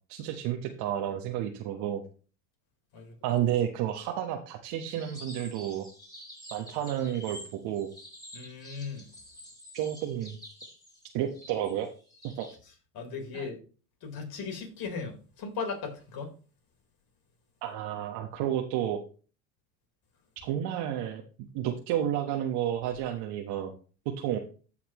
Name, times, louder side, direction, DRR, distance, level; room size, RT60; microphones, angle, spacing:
voice 1, 0.1-2.0 3.2-5.8 6.5-7.9 9.7-10.4 11.1-11.9 12.4-12.5 13.3-13.5 17.6-19.0 20.4-23.7 24.2-24.4, right 11 dB, 60° right, 1.3 m, -31 dB
sound 1, 4.9-12.6, equal, 10° left, 4.9 m, -48 dB
voice 2, 8.3-9.1 12.9-13.6 14.0-16.3, left 5 dB, 55° left, 4.2 m, -37 dB
15.0 x 5.8 x 3.1 m
supercardioid pair, 100°, 44 cm